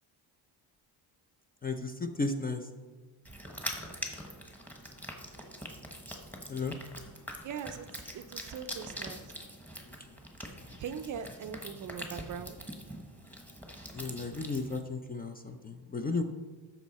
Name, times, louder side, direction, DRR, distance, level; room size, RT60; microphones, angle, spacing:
voice 1, 1.6-2.6 6.5-6.8 13.9-16.2, left 3 dB, 20° left, 7 dB, 0.4 m, -34 dB
sound 1, 3.2-14.8, equal, 5° left, 1.1 m, -44 dB
voice 2, 7.4-9.4 10.8-12.6, right 7 dB, 40° right, 10 dB, 0.5 m, -41 dB
13.5 x 5.6 x 4.1 m, 1.3 s
cardioid pair, 150°, 47 cm